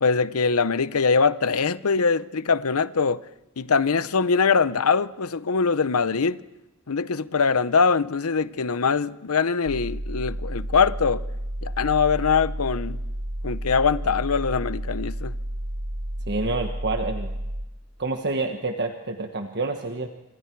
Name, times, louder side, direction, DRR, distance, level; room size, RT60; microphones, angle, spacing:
voice 1, 0.0-3.2 3.6-6.4 6.9-11.2 11.6-13.0 13.4-15.4, left 5 dB, 80° left, 0.7 m, -22 dB
sound 1, 9.7-17.7, right 1 dB, 90° right, 1.3 m, -31 dB
voice 2, 16.3-17.3 18.0-20.1, right 3 dB, 50° right, 1.4 m, -28 dB
26.5 x 26.0 x 4.7 m
head